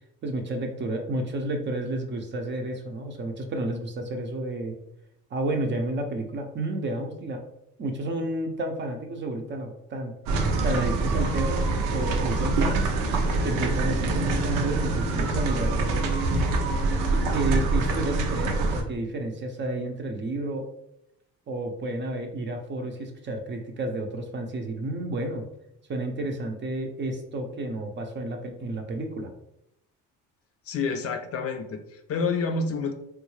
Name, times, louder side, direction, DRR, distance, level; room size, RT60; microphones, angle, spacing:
voice 1, 0.2-4.8 5.3-7.4 7.8-10.1 10.6-12.9 13.4-16.1 17.1-20.7 21.5-25.5 25.9-29.3, right 1 dB, 35° right, 4 dB, 0.6 m, -31 dB
sound 1, 10.3-18.8, right 3 dB, 90° right, 0.6 m, -25 dB
voice 2, 30.7-32.9, left 4 dB, 45° left, 7 dB, 0.4 m, -28 dB
3.7 x 2.3 x 3.1 m, 0.81 s
cardioid pair, 105°, 32 cm